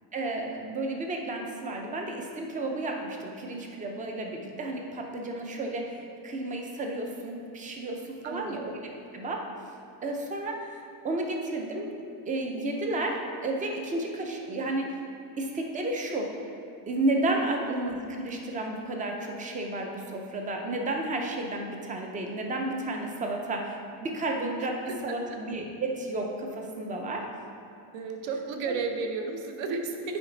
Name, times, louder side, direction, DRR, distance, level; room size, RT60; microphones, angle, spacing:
voice 1, 0.1-8.7 9.1-9.5 10.0-11.9 12.3-15.0 15.4-16.3 16.9-27.3 28.7-28.8, right 2 dB, 20° right, 2 dB, 0.4 m, -32 dB
voice 2, 8.2-8.7 24.9-25.4 27.9-30.2, right 4 dB, 70° right, 4 dB, 0.9 m, -33 dB
7.8 x 4.9 x 3.8 m, 2.6 s
cardioid pair, 175°, 47 cm